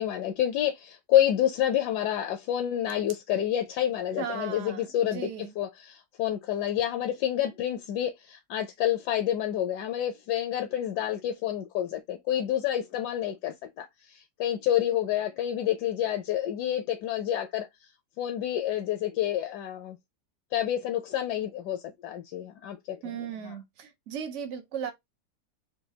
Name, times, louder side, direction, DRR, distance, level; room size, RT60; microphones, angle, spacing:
voice 1, 0.0-17.7 18.2-20.0 20.5-23.6, left 11 dB, 75° left, 1.0 m, -28 dB
voice 2, 4.2-5.5 23.0-24.9, right 8 dB, 75° right, 0.6 m, -37 dB
4.2 x 2.2 x 2.7 m
omnidirectional pair, 2.0 m